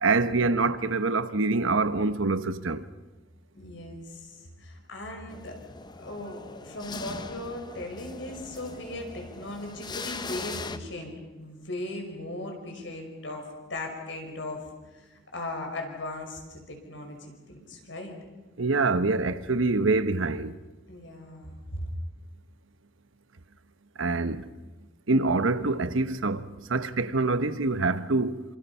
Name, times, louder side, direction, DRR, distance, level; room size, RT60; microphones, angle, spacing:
voice 1, 0.0-2.8 18.6-20.5 24.0-24.5 25.1-26.4 26.7-28.4, right 3 dB, 80° right, 1.1 m, -25 dB
voice 2, 3.5-5.6 6.0-13.4 13.7-14.6 14.9-18.1 20.9-21.8, left 1 dB, 65° left, 5.8 m, -38 dB
sound 1, 5.3-10.8, left 3 dB, 20° left, 0.8 m, -40 dB
28.0 x 27.0 x 5.7 m
head